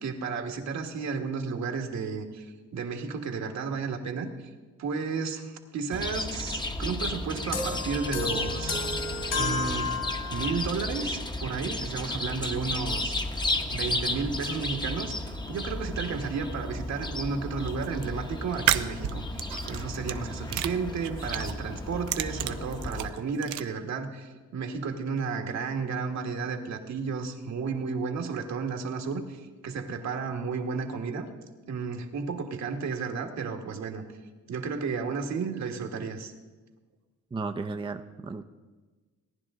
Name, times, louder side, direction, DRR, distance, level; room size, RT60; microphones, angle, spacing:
voice 1, 0.0-4.5 4.8-8.8 9.3-9.9 10.3-13.2 13.7-31.3 31.7-34.0 34.5-36.3, right 5 dB, 65° right, 4 dB, 1.5 m, -33 dB
Chirp tweet, 5.9-23.1, left 2 dB, 15° left, 0.9 m, -34 dB
sound 1, 7.5-10.7, left 3 dB, 55° left, 2.1 m, -32 dB
sound 2, 17.7-18.0 18.5-20.2 20.5-21.6 21.9-23.6, right 13 dB, 90° right, 0.6 m, -30 dB
voice 2, 37.3-38.4, right 3 dB, 15° right, 6 dB, 0.5 m, -34 dB
18.0 x 10.5 x 3.7 m, 1.3 s
cardioid pair, 90°, 30 cm